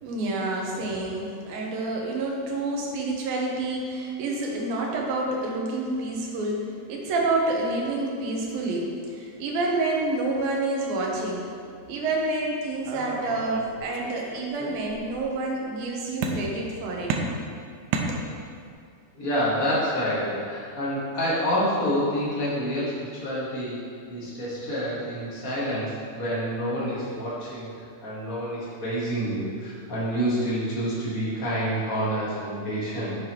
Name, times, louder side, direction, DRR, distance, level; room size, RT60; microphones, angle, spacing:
voice 1, 0.0-11.5 11.9-17.1 18.1-18.2, right 2 dB, 70° right, -1 dB, 2.7 m, -28 dB
sound 1, 12.8-14.2 14.5-15.3 16.2-16.7 17.1-18.7, right 4 dB, 85° right, 2.8 m, -31 dB
voice 2, 19.1-23.8 24.1-27.7 28.0-33.2, equal, 70° left, -8 dB, 0.8 m, -28 dB
10.5 x 7.8 x 3.1 m, 2.2 s
omnidirectional pair, 4.8 m